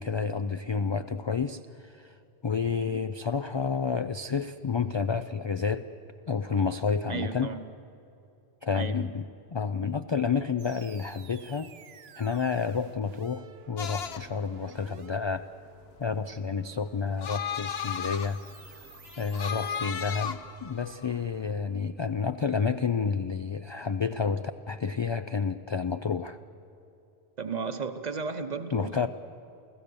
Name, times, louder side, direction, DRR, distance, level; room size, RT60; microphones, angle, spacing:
voice 1, 0.0-2.1 2.4-5.9 6.3-7.5 8.6-11.7 12.2-15.5 16.0-18.4 19.2-26.4 28.7-29.1, left 5 dB, 50° left, 10 dB, 0.3 m, -30 dB
voice 2, 7.1-7.6 8.8-9.0 27.4-29.1, right 5 dB, 45° right, 9 dB, 1.0 m, -34 dB
sound 1, 10.6-20.0, right 7 dB, 70° right, 1.0 m, -53 dB
sound 2, 13.8-21.5, left 7 dB, 70° left, 1.1 m, -36 dB
28.5 x 15.5 x 6.9 m, 2.8 s
omnidirectional pair, 1.1 m